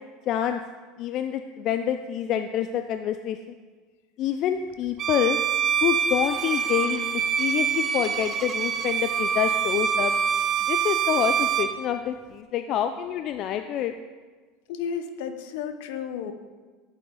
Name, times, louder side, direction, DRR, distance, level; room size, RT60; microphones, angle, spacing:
voice 1, 0.3-0.6 1.0-3.4 4.2-5.4 5.8-10.1 10.7-13.9, left 10 dB, 50° left, 8 dB, 0.5 m, -27 dB
Bowed string instrument, 5.0-11.8, right 7 dB, 40° right, 0.7 m, -25 dB
voice 2, 14.7-16.3, left 7 dB, 75° left, 8 dB, 0.9 m, -32 dB
11.0 x 8.2 x 3.9 m, 1.4 s
hypercardioid pair, 95°, 0 cm